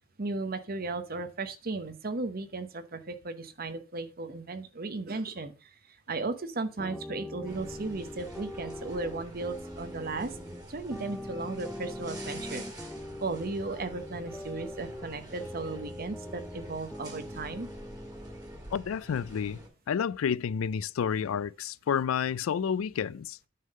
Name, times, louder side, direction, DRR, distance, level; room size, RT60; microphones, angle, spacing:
voice 1, 0.2-5.7 6.1-10.4 10.7-12.7 13.2-17.7, right 3 dB, 45° right, 0.9 m, -35 dB
sound 1, 6.8-18.6, left 1 dB, 5° left, 0.6 m, -42 dB
sound 2, 7.4-19.7, right 1 dB, 20° right, 1.9 m, -47 dB
voice 2, 18.7-19.6 19.9-23.4, left 7 dB, 90° left, 0.4 m, -30 dB
9.4 x 3.7 x 6.4 m
head